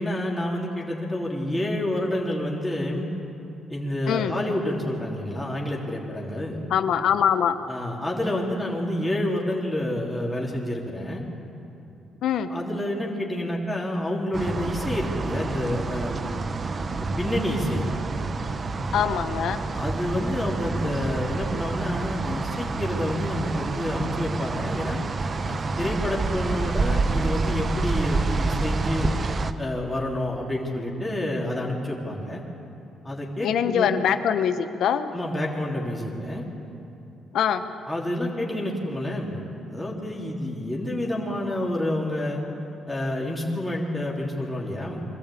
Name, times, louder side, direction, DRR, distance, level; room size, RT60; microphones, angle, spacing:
voice 1, 0.0-3.1 3.7-6.6 7.7-11.2 12.5-16.5 17.0-17.9 19.7-25.0 25.5-29.1 29.6-32.4 33.0-34.0 35.1-36.5 37.9-42.4 42.9-45.1, left 1 dB, 10° left, -3 dB, 3.4 m, -28 dB
voice 2, 6.7-7.5 12.2-12.5 18.9-19.6 33.4-35.1 37.3-37.6, left 8 dB, 75° left, 10 dB, 1.0 m, -23 dB
sound 1, 14.3-29.5, right 3 dB, 40° right, 0.9 m, -28 dB
23.5 x 14.0 x 8.6 m, 2.8 s
cardioid pair, 90°, 0 cm